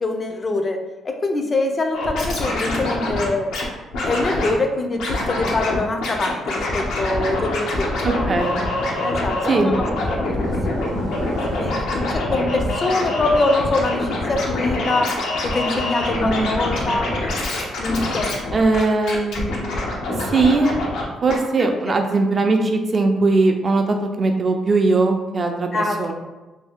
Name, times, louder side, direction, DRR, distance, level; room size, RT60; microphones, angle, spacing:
voice 1, 0.0-0.8 1.0-3.5 4.0-8.3 9.0-10.9 11.2-17.1 17.8-18.3 21.6-22.0 25.7-26.1, left 2 dB, 35° left, 4 dB, 0.5 m, -24 dB
Scratching (performance technique), 1.9-3.6 3.9-4.5 5.0-5.8 6.0-21.0 21.3-21.4, left 2 dB, 85° left, 0.7 m, -25 dB
voice 2, 8.0-8.6 9.5-9.8 16.0-16.5 18.5-19.7 20.3-20.7 21.2-26.1, right 3 dB, 40° right, 4 dB, 0.5 m, -20 dB
sound 1, 9.4-12.1, right 2 dB, 90° right, 0.6 m, -39 dB
2.7 x 2.6 x 3.5 m, 1.1 s
cardioid pair, 90°, 0 cm